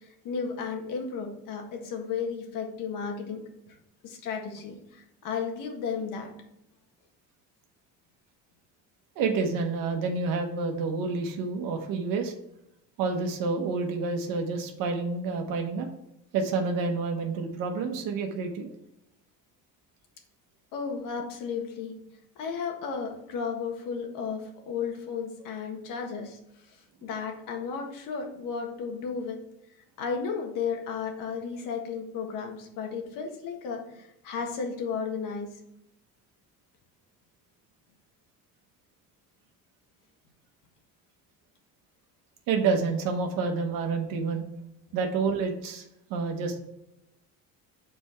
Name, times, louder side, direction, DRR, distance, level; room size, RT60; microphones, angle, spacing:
voice 1, 0.2-3.4 3.7-3.8 4.0-6.3 20.7-21.9 22.4-26.4 27.0-29.4 30.0-35.5, left 6 dB, 70° left, 2 dB, 1.6 m, -34 dB
voice 2, 9.2-12.3 13.0-15.9 16.3-18.7 42.5-44.4 44.9-45.8 46.1-46.6, right 4 dB, 85° right, 3 dB, 1.2 m, -28 dB
6.6 x 4.5 x 4.4 m, 0.82 s
cardioid pair, 175°, 33 cm